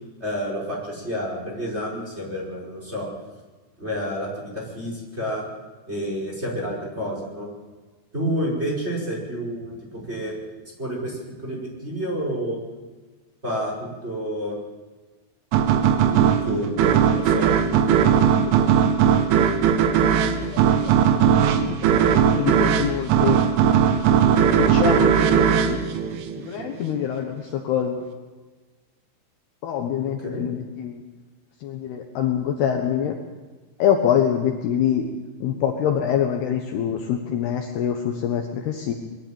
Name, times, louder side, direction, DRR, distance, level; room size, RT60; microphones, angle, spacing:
voice 1, 0.2-3.1 3.8-5.4 5.9-7.5 8.1-10.3 10.8-12.6 13.4-14.6 16.1-18.2 30.3-30.4, equal, 15° right, -3 dB, 5.2 m, -29 dB
sound 1, 15.5-26.8, right 8 dB, 90° right, 3.7 m, -18 dB
voice 2, 20.0-23.4 24.5-25.8 26.4-28.0 29.6-31.0 31.6-33.2 33.8-35.1 35.4-38.9, left 9 dB, 70° left, 3 dB, 2.9 m, -25 dB
22.0 x 13.0 x 9.0 m, 1.3 s
omnidirectional pair, 5.5 m